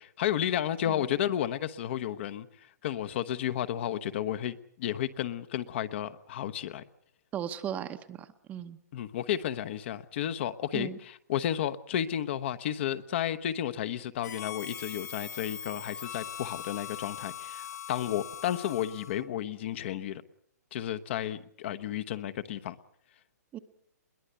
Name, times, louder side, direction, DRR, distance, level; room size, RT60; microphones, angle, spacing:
voice 1, 0.0-2.5 2.8-6.8 8.9-20.2 20.7-22.8, left 11 dB, 40° left, 14 dB, 1.0 m, -32 dB
voice 2, 7.3-8.8 10.7-11.0 23.5-23.6, right 9 dB, 15° right, 10 dB, 0.8 m, -37 dB
Harmonica, 14.2-19.3, left 9 dB, 75° left, 2.0 m, -41 dB
22.0 x 19.0 x 8.1 m, 0.66 s
hypercardioid pair, 155°, 9 cm